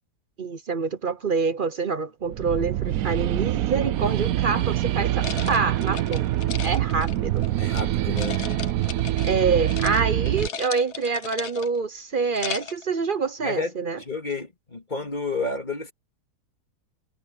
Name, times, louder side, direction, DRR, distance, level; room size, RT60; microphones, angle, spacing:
voice 1, 0.4-6.3 6.6-7.5 9.2-14.0, right 5 dB, 45° right, 0.7 m, -26 dB
sound 1, 2.3-10.5, right 13 dB, 70° right, 1.0 m, -25 dB
sound 2, 5.2-7.8 8.2-9.4 9.7-10.0 10.3-11.8 12.2-12.8, left 7 dB, 50° left, 1.1 m, -36 dB
voice 2, 7.6-8.4 13.4-15.9, left 3 dB, 25° left, 2.6 m, -31 dB
omnidirectional pair, 1.7 m